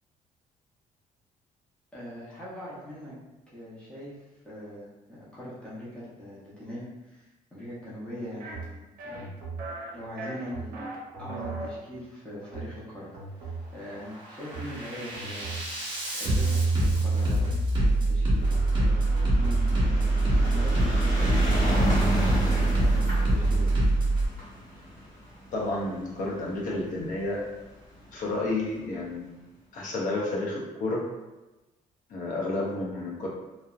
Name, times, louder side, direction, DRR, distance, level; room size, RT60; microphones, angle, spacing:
voice 1, 1.9-3.2 3.5-4.2 4.4-9.2 9.9-10.9 11.2-13.1 13.4-15.5 16.2-19.0 19.3-21.8 22.4-23.0 23.3-23.7, equal, 5° left, -8 dB, 0.6 m, -41 dB
Bass drum, 8.4-8.7 9.1-9.6 10.4-10.7 11.1-11.6 12.4-12.7 13.1-13.6 14.1-24.3, right 2 dB, 30° right, 0.7 m, -25 dB
sound 1, 8.4-8.6 9.0-9.3 9.6-9.9 10.2-11.0 11.3-11.7, right 2 dB, 75° right, 0.5 m, -38 dB
sound 2, 18.3-26.8 27.6-27.7 27.9-28.0 28.3-28.4, equal, 25° left, 1.0 m, -31 dB
voice 2, 25.5-27.4 28.1-29.2 29.7-31.1 32.1-33.3, left 2 dB, 60° left, -3 dB, 0.6 m, -30 dB
2.6 x 2.0 x 2.3 m, 1.1 s
cardioid pair, 170°, 15 cm